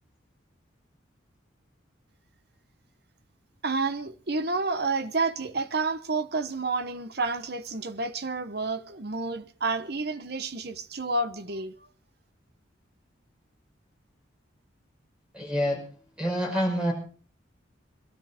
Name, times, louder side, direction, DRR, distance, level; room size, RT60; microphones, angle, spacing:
voice 1, 3.6-11.7, right 3 dB, 50° right, 1.0 m, -30 dB
voice 2, 15.3-15.8 16.2-16.9, equal, 5° right, 5.9 m, -27 dB
22.5 x 13.0 x 4.4 m
head